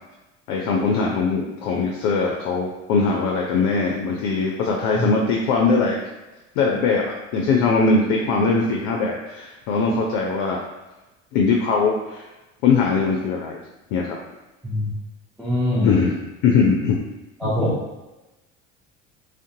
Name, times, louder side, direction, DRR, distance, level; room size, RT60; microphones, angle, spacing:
voice 1, 0.5-6.0 6.6-7.0 7.3-10.6 11.3-12.2 12.6-13.6 13.9-14.2 15.8-17.0 17.4-17.8, left 4 dB, 65° left, -1 dB, 0.5 m, -21 dB
voice 2, 15.4-15.9 17.4-17.7, equal, ahead, -10 dB, 0.6 m, -23 dB
2.5 x 2.1 x 2.6 m, 1.1 s
hypercardioid pair, 70°, 37 cm